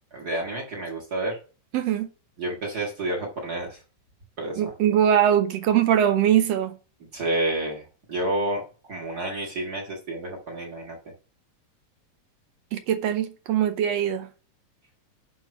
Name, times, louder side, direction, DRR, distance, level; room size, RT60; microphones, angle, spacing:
voice 1, 0.1-1.4 2.4-3.8 4.4-4.7 7.1-7.8 8.1-8.6 8.9-11.0, right 1 dB, 40° right, 1.9 m, -29 dB
voice 2, 1.7-2.1 4.6-6.8 12.7-14.3, right 9 dB, 75° right, 1.7 m, -22 dB
10.5 x 3.7 x 5.9 m
omnidirectional pair, 3.4 m